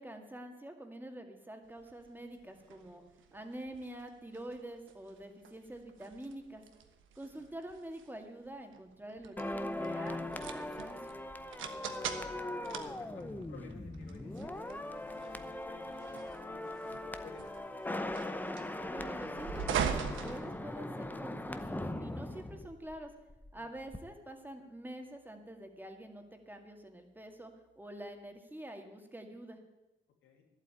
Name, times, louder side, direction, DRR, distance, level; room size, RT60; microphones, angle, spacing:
voice 1, 0.0-3.0 3.3-6.6 7.2-11.0 18.9-23.1 23.5-27.5 27.8-29.6, right 1 dB, 10° right, 4 dB, 2.1 m, -46 dB
sound 1, 1.8-21.2, right 8 dB, 80° right, 1.2 m, -43 dB
sound 2, 9.4-23.5 23.8-24.0, left 1 dB, 10° left, 0.8 m, -40 dB
voice 2, 12.8-18.5 23.5-23.7 30.2-30.4, left 5 dB, 80° left, 2 dB, 2.8 m, -55 dB
11.5 x 8.3 x 9.0 m, 1.0 s
cardioid pair, 90°, 20 cm